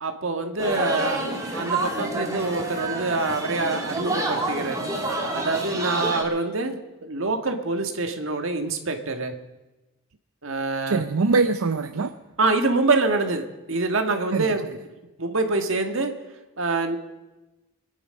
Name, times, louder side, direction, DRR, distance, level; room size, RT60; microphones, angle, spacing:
voice 1, 0.0-1.2 1.5-4.8 5.3-9.3 10.4-11.0 12.4-14.6 15.2-16.1 16.6-17.0, right 3 dB, 70° right, 5 dB, 1.6 m, -25 dB
sound 1, 0.6-6.2, right 2 dB, 15° right, 2.1 m, -28 dB
voice 2, 10.9-12.1 14.3-14.5, right 4 dB, 90° right, 8 dB, 0.6 m, -22 dB
24.5 x 10.0 x 5.3 m, 1.1 s
head